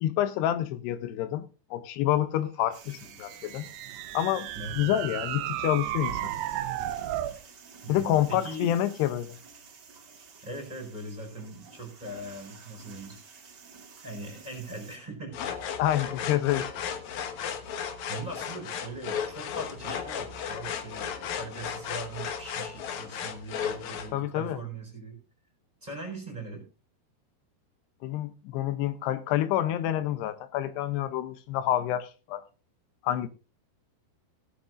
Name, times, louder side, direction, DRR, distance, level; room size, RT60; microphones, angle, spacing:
voice 1, 0.0-3.7 4.1-4.5 4.8-6.3 7.9-9.4 15.8-16.7 24.1-24.6 28.0-32.4 33.0-33.3, left 12 dB, 85° left, 2.9 m, -28 dB
sound 1, 2.7-15.0, right 5 dB, 70° right, 1.0 m, -51 dB
sound 2, 3.0-7.4, right 13 dB, 85° right, 2.9 m, -34 dB
voice 2, 4.5-4.9 7.8-8.9 10.4-13.2 14.0-15.4 18.1-25.2 25.8-26.6, right 2 dB, 10° right, 4.3 m, -40 dB
sound 3, 15.3-24.1, left 7 dB, 65° left, 1.9 m, -35 dB
17.0 x 11.5 x 2.5 m
omnidirectional pair, 4.7 m